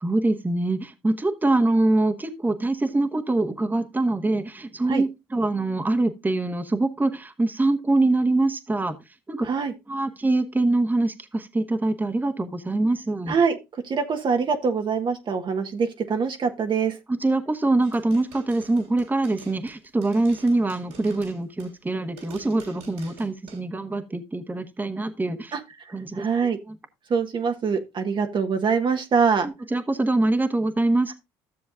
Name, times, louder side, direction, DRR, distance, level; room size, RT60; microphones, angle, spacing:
voice 1, 0.0-9.0 9.3-9.5 9.9-13.3 17.1-25.5 25.9-26.3 26.7-26.8 29.4-31.1, right 2 dB, 15° right, 7 dB, 1.3 m, -24 dB
voice 2, 9.4-9.7 13.3-17.0 25.5-26.6 27.1-29.5, right 5 dB, 45° right, 5 dB, 1.3 m, -24 dB
sound 1, 17.8-21.9 22.2-23.6, right 5 dB, 80° right, 3.8 m, -48 dB
13.5 x 6.9 x 2.5 m, 0.24 s
hypercardioid pair, 65°, 11 cm